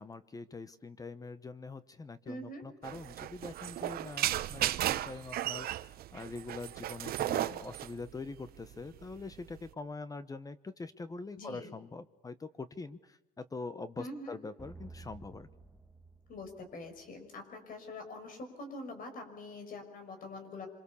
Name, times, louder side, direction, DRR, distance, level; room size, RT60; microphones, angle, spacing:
voice 1, 0.0-15.5, left 3 dB, 20° left, 14 dB, 1.0 m, -44 dB
voice 2, 2.3-2.7 11.4-11.7 14.0-14.4 16.3-20.7, left 2 dB, 55° left, 6 dB, 6.3 m, -44 dB
sound 1, 2.8-9.7, right 13 dB, 65° right, 0.8 m, -35 dB
sound 2, 14.6-17.3, right 3 dB, 5° right, 1.6 m, -52 dB
26.0 x 23.0 x 7.1 m, 1.0 s
cardioid pair, 110°, 17 cm